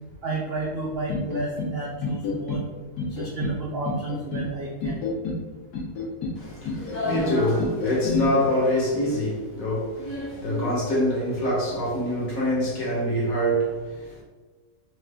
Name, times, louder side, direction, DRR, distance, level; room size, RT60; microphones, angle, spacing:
voice 1, 0.2-2.6 3.1-5.0, right 3 dB, 70° right, 0.6 m, -31 dB
sound 1, 1.1-1.7 2.0-2.6 3.0-3.6 3.9-4.5 4.8-5.4 5.7-6.4 6.7-7.3 7.6-8.3, left 4 dB, 80° left, 1.4 m, -29 dB
voice 2, 6.3-14.2, equal, 60° left, 1.6 m, -25 dB
4.1 x 2.5 x 3.3 m
omnidirectional pair, 1.6 m